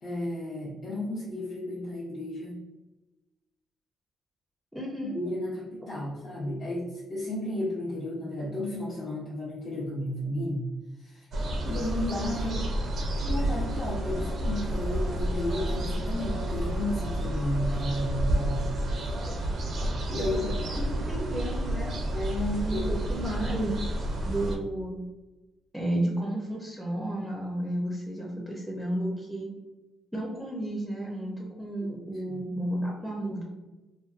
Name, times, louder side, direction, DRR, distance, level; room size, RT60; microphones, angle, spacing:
voice 1, 0.0-2.6 5.0-10.6 11.0-11.3 11.6-12.7 13.2-18.6 19.0-19.1 20.1-20.5 22.1-23.0 31.8-32.4, left 1 dB, 50° left, -7 dB, 0.6 m, -33 dB
voice 2, 4.7-5.1 20.2-20.4 20.7-21.9 22.7-23.7 24.3-25.0 25.7-29.5 30.1-33.4, right 1 dB, 5° right, -3 dB, 0.5 m, -32 dB
sound 1, 11.3-24.6, right 1 dB, 60° right, 0.4 m, -30 dB
2.5 x 2.2 x 2.4 m, 1.1 s
cardioid pair, 90°, 0 cm